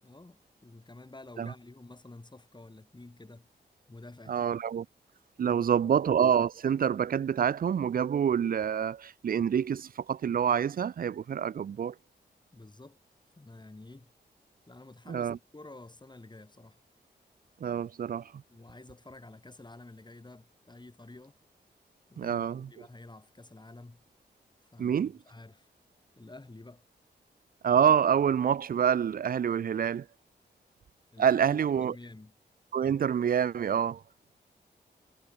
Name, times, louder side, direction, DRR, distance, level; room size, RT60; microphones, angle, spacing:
voice 1, 0.0-3.5 3.9-4.5 5.4-5.9 12.5-13.0 13.4-14.1 14.7-16.8 18.5-21.4 22.1-24.0 24.7-25.7 26.1-26.8 31.1-32.3, left 2 dB, 25° left, 4.9 m, -50 dB
voice 2, 4.3-4.9 5.4-11.9 15.1-15.4 17.6-18.3 22.2-22.7 24.8-25.2 27.6-30.1 31.2-31.9 32.7-34.0, right 8 dB, 55° right, 0.4 m, -27 dB
cardioid pair, 60°, 18 cm